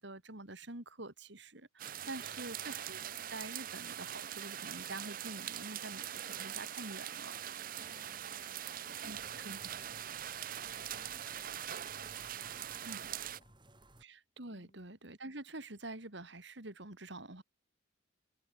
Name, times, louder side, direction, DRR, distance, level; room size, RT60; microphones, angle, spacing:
voice 1, 0.0-3.0 3.3-7.3 9.0-9.2 9.4-9.6 12.8-13.0 14.0-17.4, right 2 dB, 60° right, 2.8 m, -47 dB
sound 1, 1.8-13.4, right 10 dB, 45° right, 0.6 m, -42 dB
voice 2, 2.0-2.5 7.7-14.0 14.5-14.8, left 1 dB, 35° left, 4.7 m, -65 dB
sound 2, 9.1-14.0, right 1 dB, 25° right, 4.8 m, -60 dB
head